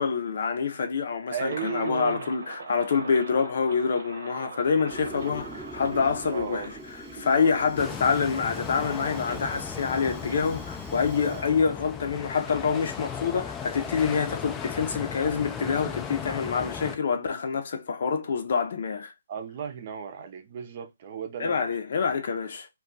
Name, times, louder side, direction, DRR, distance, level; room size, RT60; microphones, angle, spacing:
voice 1, 0.0-6.7 7.1-19.1 21.4-22.7, left 5 dB, 65° left, 0.6 m, -26 dB
voice 2, 1.3-2.3 5.9-6.7 7.1-7.5 11.1-11.6 19.3-21.7, right 7 dB, 45° right, 0.6 m, -36 dB
sound 1, 1.4-11.2, right 3 dB, 80° right, 0.9 m, -44 dB
Fire, 4.9-11.5, right 1 dB, 5° right, 0.7 m, -43 dB
sound 2, 7.8-17.0, left 7 dB, 15° left, 0.4 m, -36 dB
2.3 x 2.3 x 3.8 m
hypercardioid pair, 150°, 0 cm